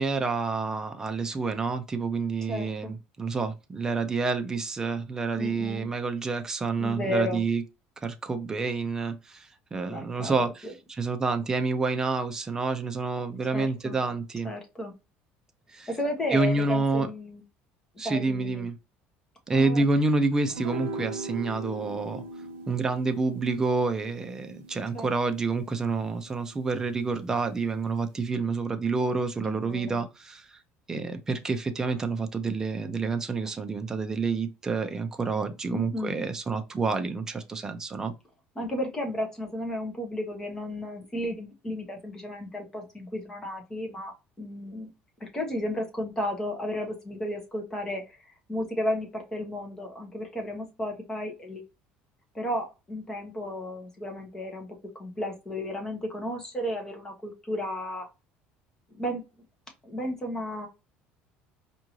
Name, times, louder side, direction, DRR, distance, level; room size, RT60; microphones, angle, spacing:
voice 1, 0.0-7.6 8.0-14.5 15.7-16.0 16.3-17.1 18.0-18.8 19.5-22.2 22.7-30.5 30.9-38.1, right 3 dB, 15° right, 0.5 m, -28 dB
voice 2, 2.5-3.0 5.3-5.9 6.8-7.4 9.8-10.7 13.5-14.0 14.4-14.9 15.9-17.4 18.0-18.7 19.5-19.9 24.9-25.4 29.4-30.0 35.7-36.2 38.5-44.9 45.2-51.6 52.3-54.7 54.9-58.1 58.9-59.2 59.8-60.7, left 1 dB, 15° left, 1.0 m, -33 dB
sound 1, 20.5-27.0, right 2 dB, 80° right, 0.8 m, -40 dB
4.6 x 2.6 x 3.0 m
cardioid pair, 165°, 4 cm